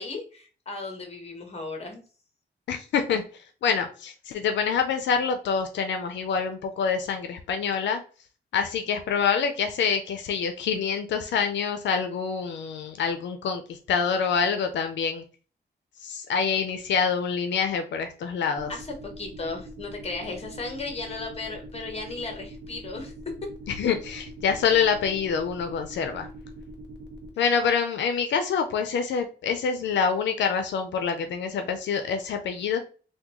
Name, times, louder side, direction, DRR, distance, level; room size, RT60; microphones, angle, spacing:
voice 1, 0.0-2.0 18.7-23.1, left 3 dB, 35° left, 3 dB, 1.0 m, -35 dB
voice 2, 2.7-3.2 3.6-8.0 8.5-15.2 16.0-18.7 23.7-26.3 27.4-32.8, left 6 dB, 90° left, 7 dB, 0.4 m, -26 dB
sound 1, 18.6-27.3, right 1 dB, 75° right, 0.8 m, -42 dB
3.5 x 2.2 x 2.9 m, 0.38 s
wide cardioid pair, 105°, 18 cm